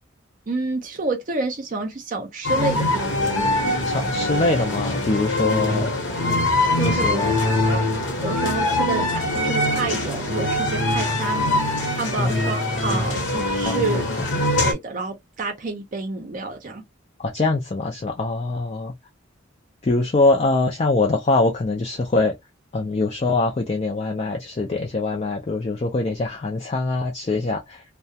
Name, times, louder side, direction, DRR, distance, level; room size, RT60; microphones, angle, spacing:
voice 1, 0.5-3.7 6.8-7.3 7.6-7.8 8.2-14.0 14.6-16.8, right 3 dB, 40° right, 0.5 m, -29 dB
sound 1, 2.4-14.7, left 1 dB, 60° left, 0.9 m, -23 dB
voice 2, 3.9-5.9 6.8-7.4 12.2-12.4 13.7-14.2 17.2-18.9 19.8-22.3 22.7-27.8, left 2 dB, 30° left, 0.4 m, -23 dB
2.3 x 2.1 x 2.7 m
head